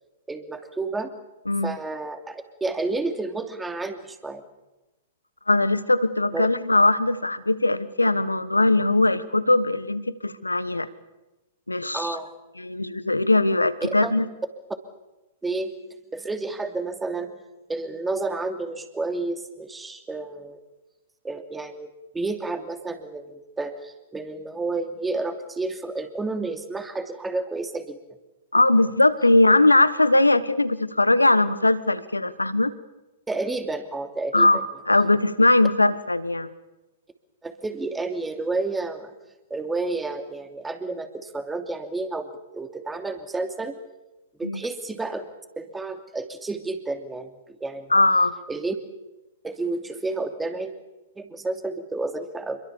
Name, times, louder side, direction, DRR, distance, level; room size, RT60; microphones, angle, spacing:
voice 1, 0.3-1.1 1.6-4.4 6.3-6.5 11.9-12.3 13.8-14.1 15.4-15.7 16.1-17.3 17.7-20.6 21.2-28.0 33.3-34.5 37.4-39.1 39.5-42.3 42.5-43.7 44.4-45.3 45.6-47.3 47.6-48.0 48.5-48.8 49.4-50.7 51.2-52.6, right 3 dB, 10° right, 7 dB, 2.8 m, -30 dB
voice 2, 1.5-1.8 5.5-10.9 11.7-12.2 12.6-14.3 28.5-32.7 34.3-36.5 44.4-44.6 47.9-48.3, left 2 dB, 90° left, 16 dB, 1.3 m, -20 dB
27.5 x 23.0 x 7.1 m, 1.0 s
figure-of-eight pair, 110°, 0 cm